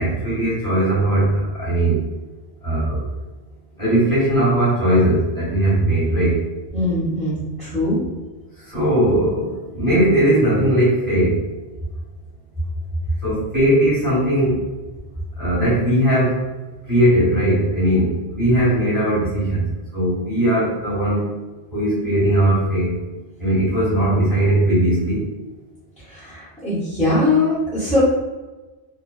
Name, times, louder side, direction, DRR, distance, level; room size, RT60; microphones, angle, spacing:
voice 1, 0.0-2.0 2.6-3.0 3.8-6.4 8.7-11.4 13.2-14.6 15.4-16.4 16.9-19.7 19.9-21.3 21.7-22.9 23.4-25.2, right 1 dB, 15° right, -11 dB, 1.1 m, -18 dB
voice 2, 6.7-8.0 26.0-28.0, left 2 dB, 10° left, -12 dB, 0.6 m, -21 dB
2.5 x 2.2 x 2.3 m, 1.2 s
omnidirectional pair, 1.3 m